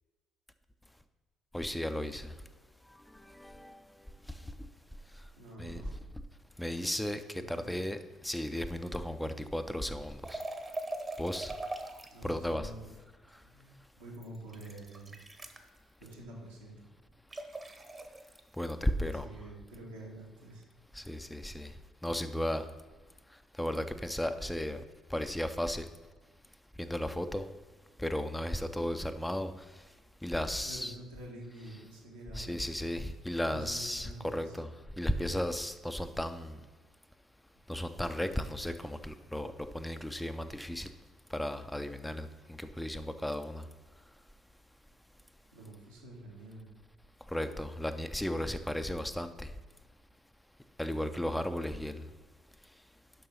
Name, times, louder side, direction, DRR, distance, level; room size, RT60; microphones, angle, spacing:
voice 1, 1.5-2.3 3.1-3.8 5.6-5.8 6.6-8.0 8.2-10.4 11.2-11.5 12.2-12.7 18.6-19.3 20.9-21.7 22.0-22.6 23.6-24.8 25.1-25.9 26.8-27.5 28.0-29.5 30.2-31.0 32.3-34.7 35.0-36.6 37.7-40.9 41.3-43.7 47.3-49.5 50.8-52.0, left 1 dB, 5° left, 9 dB, 0.5 m, -35 dB
voice 2, 5.4-6.0 7.3-7.9 12.1-12.9 13.4-15.2 16.0-16.8 19.0-20.6 30.7-32.7 33.4-34.6 45.5-46.7, right 1 dB, 85° right, -5 dB, 1.8 m, -47 dB
sound 1, 10.2-12.3 14.1-15.7 17.3-18.4, right 2 dB, 25° right, 1.0 m, -41 dB
6.8 x 5.4 x 5.5 m, 1.3 s
hypercardioid pair, 50°, 0 cm